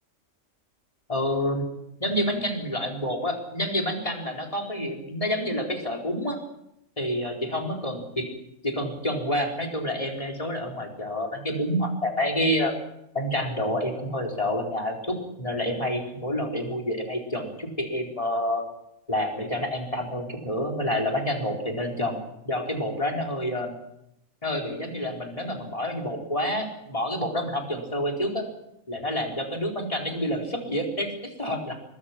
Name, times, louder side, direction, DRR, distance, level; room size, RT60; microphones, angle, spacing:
voice 1, 1.1-1.6 2.0-6.4 7.0-8.3 8.6-12.7 13.1-18.6 19.1-22.2 22.4-23.7 24.4-28.4 28.9-31.7, left 1 dB, 25° left, 1 dB, 4.5 m, -28 dB
23.5 x 23.0 x 6.0 m, 0.80 s
omnidirectional pair, 1.3 m